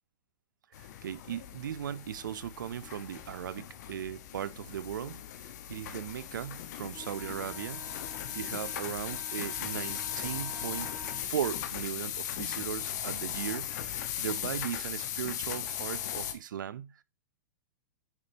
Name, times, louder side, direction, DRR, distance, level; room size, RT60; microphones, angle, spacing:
sound 1, 0.7-16.3, left 10 dB, 60° left, 1.2 m, -38 dB
voice 1, 0.8-5.2 5.4-7.8 8.3-10.9 11.2-17.0, right 10 dB, 80° right, 0.6 m, -38 dB
Wind instrument woodwind instrument, 6.9-11.3, right 3 dB, 15° right, 0.6 m, -50 dB
9.4 x 5.1 x 2.9 m
hypercardioid pair, 125°, 10 cm